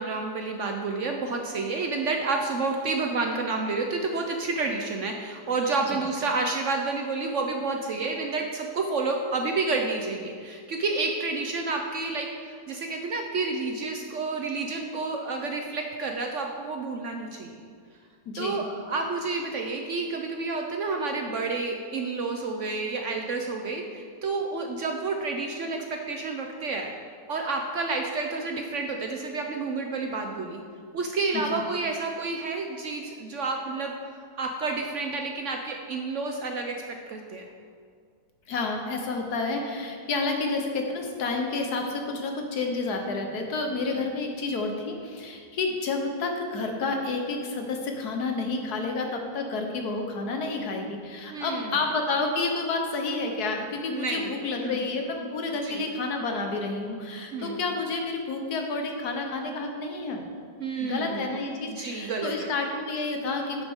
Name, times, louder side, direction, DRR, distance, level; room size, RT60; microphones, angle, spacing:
voice 1, 0.0-17.5 18.4-26.9 27.3-30.6 30.9-34.0 34.4-37.4 43.8-44.0 51.3-51.8 53.9-54.8 55.5-55.8 57.3-57.6 60.6-61.3 61.7-62.5, right 3 dB, 60° right, 3 dB, 0.8 m, -30 dB
voice 2, 18.3-18.6 31.5-31.6 38.5-60.2 60.8-63.6, left 3 dB, 70° left, 3 dB, 1.5 m, -30 dB
10.5 x 7.9 x 3.6 m, 2.1 s
omnidirectional pair, 1.8 m